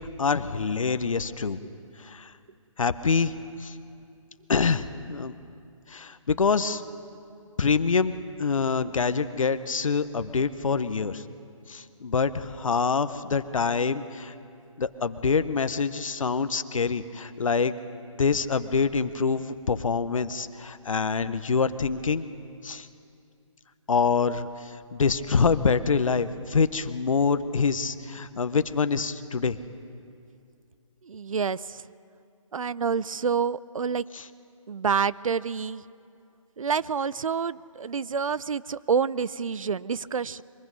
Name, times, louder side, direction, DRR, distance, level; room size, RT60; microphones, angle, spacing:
voice 1, 0.2-1.6 2.0-2.3 2.8-3.3 3.6-3.8 4.5-5.3 5.9-6.8 7.6-11.2 11.7-14.3 14.8-17.8 18.2-22.2 22.6-22.9 23.9-29.6 34.1-34.3, left 5 dB, 70° left, 12 dB, 0.9 m, -25 dB
voice 2, 31.0-31.8 32.5-34.0 34.7-35.8 36.6-40.4, right 6 dB, 75° right, 19 dB, 0.5 m, -28 dB
23.0 x 21.0 x 5.5 m, 2.5 s
figure-of-eight pair, 150°, 18 cm